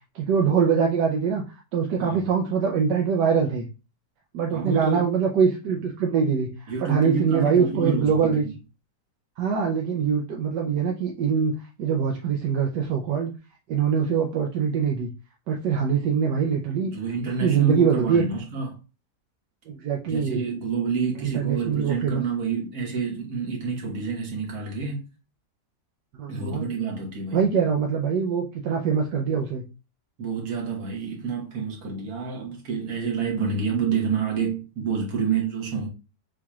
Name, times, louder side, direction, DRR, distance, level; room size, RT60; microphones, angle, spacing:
voice 1, 0.1-1.4 1.7-3.7 4.3-8.4 9.4-13.3 13.7-15.1 15.5-16.9 17.4-18.3 19.7-20.4 21.2-22.2 26.2-26.7 27.3-29.6, right 6 dB, 80° right, 1.3 m, -23 dB
voice 2, 4.5-5.0 6.7-8.5 16.8-18.8 20.0-25.1 26.3-27.4 30.2-35.9, right 5 dB, 60° right, 1.8 m, -28 dB
7.0 x 3.0 x 2.3 m
omnidirectional pair, 1.8 m